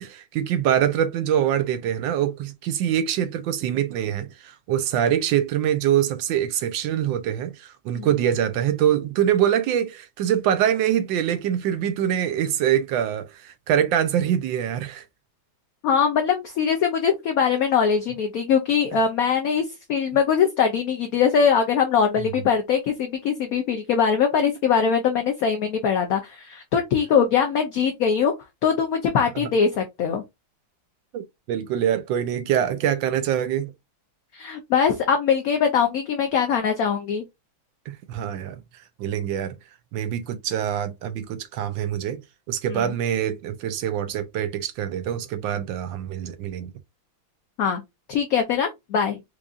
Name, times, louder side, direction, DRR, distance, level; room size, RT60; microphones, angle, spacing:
voice 1, 0.0-15.0 22.2-22.3 29.3-29.5 31.1-33.7 37.9-38.6 39.0-39.5 39.9-42.2 42.5-46.7, right 10 dB, 75° right, 1.2 m, -24 dB
voice 2, 15.8-28.3 28.6-30.2 34.3-37.2 42.7-42.9 47.6-47.8 48.1-49.2, left 7 dB, 70° left, 0.8 m, -22 dB
4.7 x 2.5 x 2.4 m
omnidirectional pair, 2.1 m